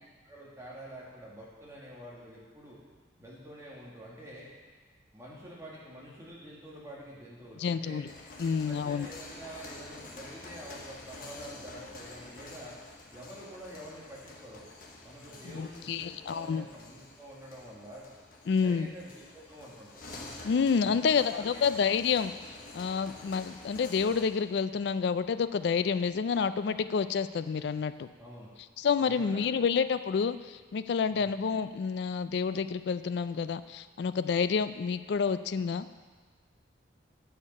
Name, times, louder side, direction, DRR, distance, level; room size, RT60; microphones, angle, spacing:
voice 1, 0.2-2.8 3.2-4.5 5.1-8.0 8.4-12.8 13.1-14.6 15.0-18.0 18.6-20.1 20.8-21.7 28.2-28.5 29.0-29.7 31.1-31.3, equal, 15° right, -6 dB, 1.9 m, -47 dB
voice 2, 7.6-8.1 8.4-9.1 15.5-16.7 18.5-18.9 20.4-22.3 22.7-28.1 28.8-36.1, left 6 dB, 60° left, 13 dB, 0.3 m, -29 dB
sound 1, 7.9-24.4, left 2 dB, 45° left, 1.0 m, -49 dB
8.7 x 6.7 x 5.3 m, 1.5 s
head